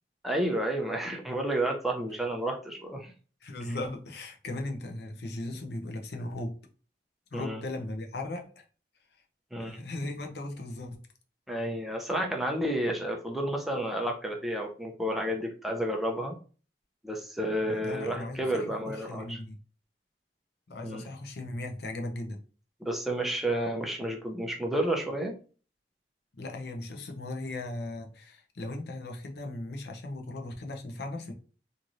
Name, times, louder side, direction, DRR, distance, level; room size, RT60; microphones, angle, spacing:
voice 1, 0.2-3.1 7.3-7.6 9.5-9.8 11.5-16.3 17.0-19.4 20.8-21.1 22.8-25.3, right 1 dB, ahead, 0.5 m, -31 dB
voice 2, 3.4-6.6 7.3-8.6 9.6-11.0 17.6-19.6 20.7-22.4 26.3-31.3, left 2 dB, 65° left, 0.6 m, -37 dB
3.0 x 2.6 x 2.6 m
head